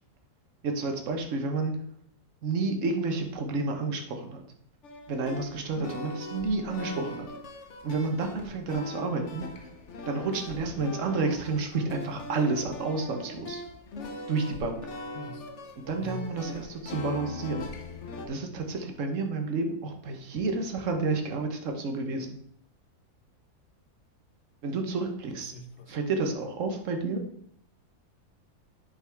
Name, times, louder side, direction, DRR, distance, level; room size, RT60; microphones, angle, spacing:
voice 1, 0.6-1.7 2.4-4.4 5.1-7.3 7.8-9.4 10.1-13.6 14.3-14.8 15.9-17.7 18.2-22.4 24.6-25.5 25.9-27.2, right 3 dB, 55° right, 4 dB, 1.4 m, -30 dB
sound 1, 4.8-18.3, left 2 dB, 55° left, 1.2 m, -41 dB
voice 2, 15.1-15.5 16.0-16.3 25.4-26.0, equal, 80° left, 7 dB, 1.4 m, -42 dB
10.0 x 5.5 x 3.5 m, 0.67 s
omnidirectional pair, 1.6 m